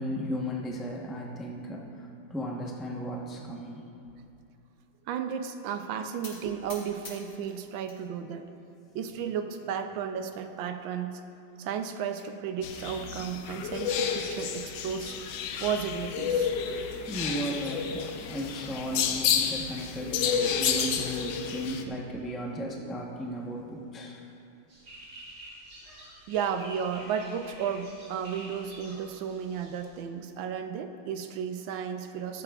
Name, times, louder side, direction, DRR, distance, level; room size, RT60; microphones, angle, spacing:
voice 1, 0.0-3.8 17.1-24.2, equal, ahead, -2 dB, 0.4 m, -35 dB
voice 2, 5.1-8.5 8.9-11.2 11.6-15.2 15.6-16.5 26.3-32.4, right 7 dB, 80° right, 7 dB, 1.4 m, -33 dB
sound 1, 6.2-8.0 8.4-9.0 9.6-9.7 10.0-10.1 10.4-10.5 11.6-12.3, left 2 dB, 45° left, 1.9 m, -48 dB
sound 2, 12.6-21.8, left 7 dB, 70° left, 1.2 m, -30 dB
sound 3, 24.7-30.0, right 1 dB, 55° right, 3.4 m, -48 dB
14.0 x 11.5 x 2.4 m, 2.8 s
omnidirectional pair, 2.1 m